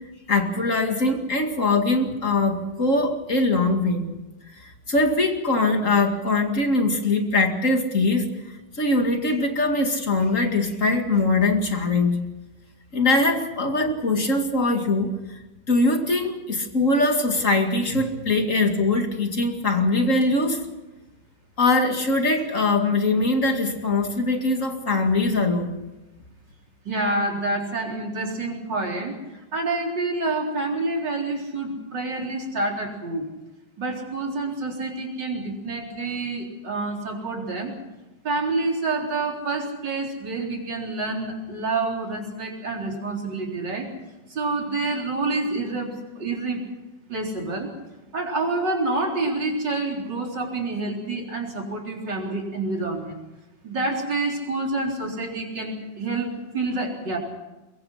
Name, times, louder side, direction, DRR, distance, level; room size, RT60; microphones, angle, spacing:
voice 1, 0.3-4.1 4.6-8.3 8.8-12.2 12.9-15.1 15.7-20.6 21.6-25.7, left 2 dB, 45° left, 4 dB, 2.6 m, -22 dB
voice 2, 26.8-33.3 33.8-37.7 38.2-43.9 44.3-46.7 47.1-47.7 48.1-53.2 53.6-57.2, right 2 dB, 85° right, 0 dB, 4.6 m, -28 dB
23.0 x 23.0 x 5.8 m, 1.1 s
omnidirectional pair, 1.9 m